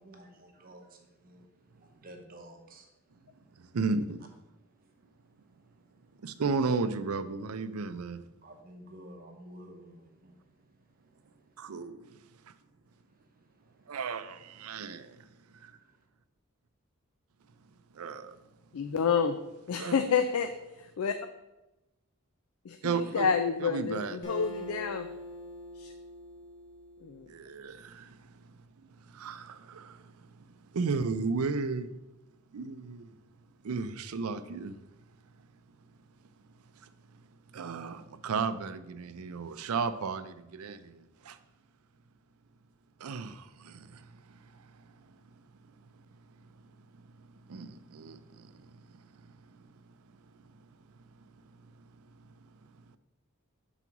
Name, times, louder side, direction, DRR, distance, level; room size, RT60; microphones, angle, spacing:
voice 1, 0.0-3.8 4.7-6.3 8.4-11.8 13.0-14.0 15.7-16.1, right 1 dB, 40° right, 3 dB, 0.8 m, -54 dB
voice 2, 3.6-4.3 6.2-8.2 11.6-12.2 12.5-12.6 13.9-15.3 15.6-15.7 17.9-18.4 19.8-19.9 22.8-23.3 23.6-24.2 27.3-28.3 28.8-30.4 30.7-31.9 32.5-33.1 33.6-34.8 36.8-36.9 37.5-41.4 43.0-45.2 47.0-49.1 49.5-49.7 51.8-51.9, right 4 dB, 85° right, 12 dB, 0.5 m, -35 dB
voice 3, 18.7-19.4 19.7-20.5 20.8-21.2 22.6-25.1 25.8-25.9 27.0-27.3, left 6 dB, 85° left, 8 dB, 0.4 m, -29 dB
Acoustic guitar, 24.2-27.7, left 1 dB, 40° left, 1.6 m, -44 dB
6.1 x 4.0 x 5.9 m, 0.98 s
head